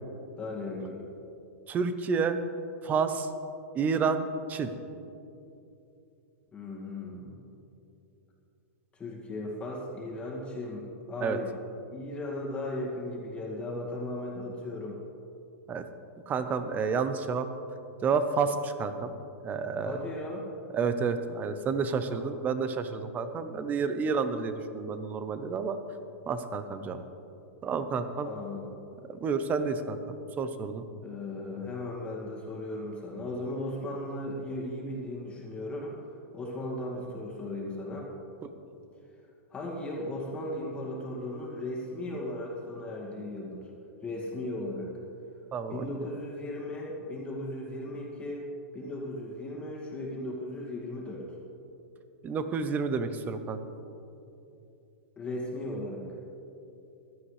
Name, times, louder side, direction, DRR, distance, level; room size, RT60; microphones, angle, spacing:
voice 1, 0.4-1.1 6.5-7.4 8.9-11.5 11.9-15.0 19.8-20.5 22.1-22.3 28.2-28.7 31.0-36.0 36.3-38.1 39.5-43.6 44.0-44.9 45.7-48.4 48.7-51.2 55.2-56.0, left 1 dB, 15° left, -3 dB, 2.2 m, -36 dB
voice 2, 1.7-2.4 2.8-3.3 3.7-4.7 11.2-11.4 15.7-15.8 16.3-17.5 18.0-19.1 19.4-20.0 20.7-25.8 26.3-27.0 27.6-28.3 29.1-30.8 45.5-45.9 52.2-53.6, right 5 dB, 20° right, 10 dB, 0.7 m, -30 dB
15.5 x 12.5 x 3.3 m, 2.8 s
supercardioid pair, 145°, 8 cm